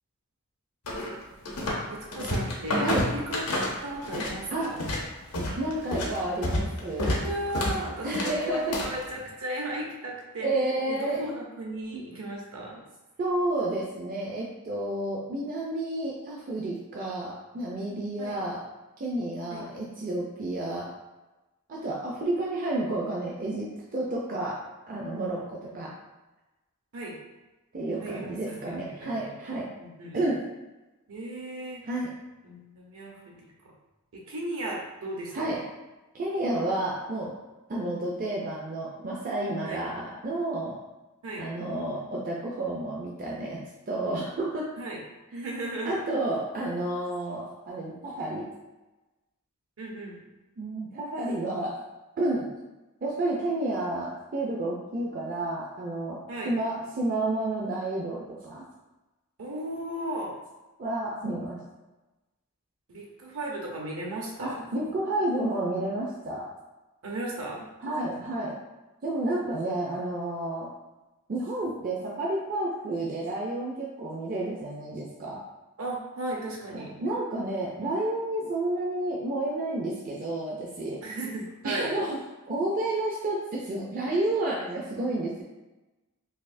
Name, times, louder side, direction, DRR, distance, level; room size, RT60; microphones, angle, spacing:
sound 1, 0.9-1.9 2.1-4.4 4.6-9.0, left 1 dB, 90° left, 0.8 m, -29 dB
voice 1, 1.9-4.8 7.2-10.5 10.9-12.8 18.2-18.3 19.5-19.6 25.8-25.9 26.9-27.1 28.0-29.3 29.8-30.2 31.1-31.8 32.4-33.5 34.1-35.6 39.7-39.8 41.2-41.4 44.8-45.0 45.3-46.0 49.8-50.2 56.3-56.5 59.4-60.3 62.9-64.7 67.0-67.7 75.8-76.9 81.0-81.9, right 1 dB, 65° right, -2 dB, 0.8 m, -36 dB
voice 2, 5.6-7.1 8.0-8.8 10.4-11.3 11.9-12.0 13.2-18.6 19.0-20.9 21.7-24.6 24.9-25.9 27.7-29.7 30.1-30.5 31.8-32.1 35.3-35.6 36.1-37.3 37.7-40.8 41.4-44.7 45.8-48.5 50.6-51.7 52.2-52.5 53.0-56.2 56.5-58.7 60.8-61.6 64.4-66.5 67.8-68.6 69.0-70.7 71.3-75.4 76.7-81.0 81.6-82.2 82.5-85.4, right 1 dB, 40° right, -4 dB, 0.4 m, -30 dB
4.1 x 2.7 x 2.6 m, 1.1 s
head